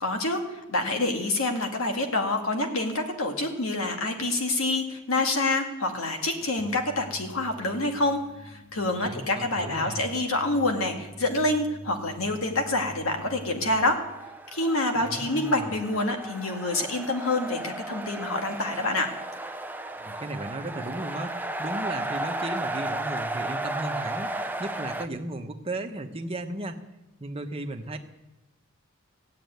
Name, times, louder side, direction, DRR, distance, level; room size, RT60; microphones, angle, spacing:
voice 1, 0.0-14.0 14.5-19.1, left 2 dB, 70° left, 3 dB, 2.0 m, -27 dB
sound 1, 6.6-13.8, equal, 45° left, 4.0 m, -46 dB
voice 2, 9.0-10.1 14.9-15.8 19.9-26.8 27.2-28.0, right 2 dB, 25° right, 5 dB, 1.1 m, -35 dB
sound 2, 13.5-25.1, right 2 dB, 10° right, 0.6 m, -34 dB
16.0 x 7.8 x 9.4 m, 1.0 s
head